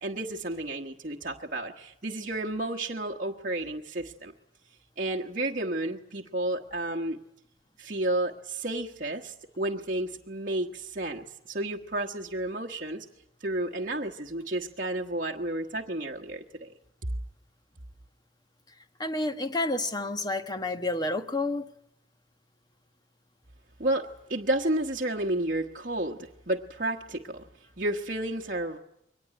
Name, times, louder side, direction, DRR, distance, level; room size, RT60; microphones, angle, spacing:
voice 1, 0.0-4.3 5.0-7.2 7.8-13.0 13.4-16.7 23.8-27.4 27.8-28.8, right 1 dB, 45° right, 1.3 m, -31 dB
voice 2, 19.0-21.7, left 2 dB, 20° left, 1.3 m, -29 dB
23.0 x 19.0 x 9.7 m
head